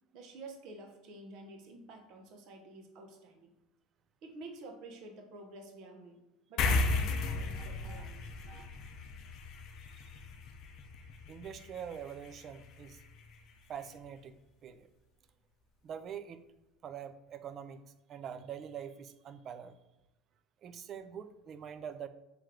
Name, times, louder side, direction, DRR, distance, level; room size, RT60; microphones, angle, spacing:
voice 1, 0.1-3.5 4.2-6.2 6.5-8.2 8.4-8.7, right 2 dB, 60° right, 3 dB, 0.7 m, -50 dB
sound 1, 6.6-13.4, left 3 dB, 55° left, 0.5 m, -36 dB
voice 2, 7.6-8.1 8.5-8.7 9.8-10.2 11.3-13.0 13.7-14.4 14.6-14.9 15.8-16.5 16.8-17.8 18.1-19.8 20.6-22.1, right 8 dB, 45° right, 11 dB, 0.3 m, -45 dB
3.1 x 3.1 x 3.7 m, 0.95 s
supercardioid pair, 105°, 0 cm